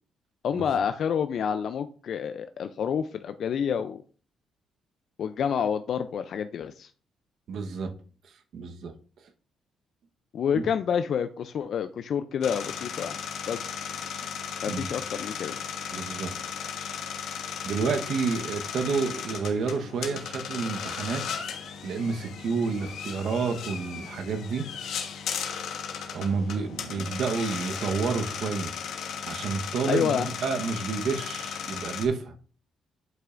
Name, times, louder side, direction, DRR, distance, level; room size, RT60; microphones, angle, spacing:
voice 1, 0.4-4.0 5.2-6.9 10.3-13.2 13.5-13.7 14.6-15.6 29.9-30.3, left 7 dB, 65° left, 10 dB, 0.4 m, -28 dB
voice 2, 7.5-7.9 8.5-8.9 10.5-10.6 14.7-14.9 15.9-16.3 17.6-21.2 21.8-24.7 26.1-28.7 29.2-32.3, right 5 dB, 70° right, 6 dB, 1.1 m, -29 dB
sound 1, 12.4-32.0, left 7 dB, 80° left, 1.2 m, -36 dB
11.0 x 5.5 x 2.5 m, 0.40 s
cardioid pair, 90°, 0 cm